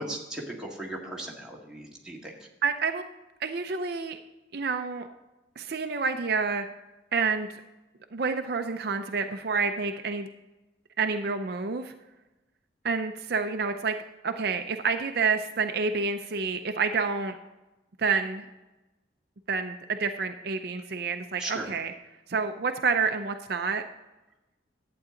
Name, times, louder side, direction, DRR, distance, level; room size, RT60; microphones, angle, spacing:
voice 1, 0.0-2.3 21.4-21.7, right 1 dB, 5° right, -4 dB, 1.8 m, -37 dB
voice 2, 2.6-3.0 3.4-4.2 4.5-5.1 5.6-6.7 7.1-7.5 8.1-10.3 11.0-11.9 12.8-14.0 14.2-17.4 18.0-18.4 19.5-21.9 22.3-23.8, right 5 dB, 55° right, 6 dB, 0.6 m, -28 dB
11.5 x 8.6 x 3.8 m, 1.0 s
head